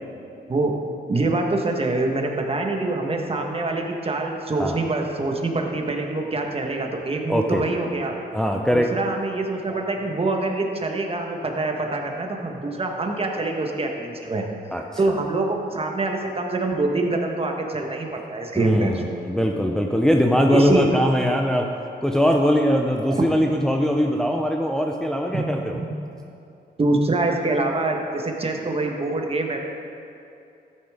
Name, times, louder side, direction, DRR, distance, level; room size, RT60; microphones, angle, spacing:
voice 1, 0.5-0.8 1.1-8.1 8.7-14.4 15.0-19.0 20.5-20.9 23.1-23.3 25.3-25.5 25.7-26.0 26.8-29.6, right 2 dB, 30° right, 2 dB, 1.4 m, -25 dB
voice 2, 7.3-7.6 8.3-8.9 14.7-15.2 18.5-21.7 22.0-25.8, equal, 5° left, 1 dB, 0.7 m, -21 dB
13.5 x 9.9 x 3.6 m, 2.6 s
cardioid pair, 85°, 19 cm